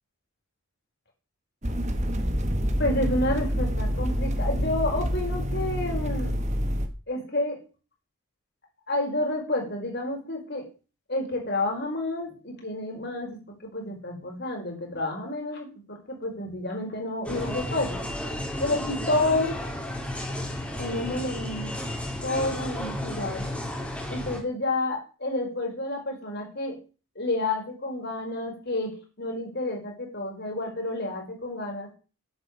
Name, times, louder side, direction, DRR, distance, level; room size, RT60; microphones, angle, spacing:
sound 1, 1.6-6.9, equal, 30° right, 1.5 m, -27 dB
voice 1, 2.8-6.3 7.1-7.6 8.9-10.7 11.1-18.0 18.6-19.6 20.8-21.8 22.2-23.5 24.1-26.8 27.2-31.9, left 2 dB, 50° left, 1 dB, 5.3 m, -30 dB
sound 2, 17.2-24.4, left 1 dB, 5° left, 3.1 m, -33 dB
10.5 x 8.2 x 8.7 m, 0.34 s
head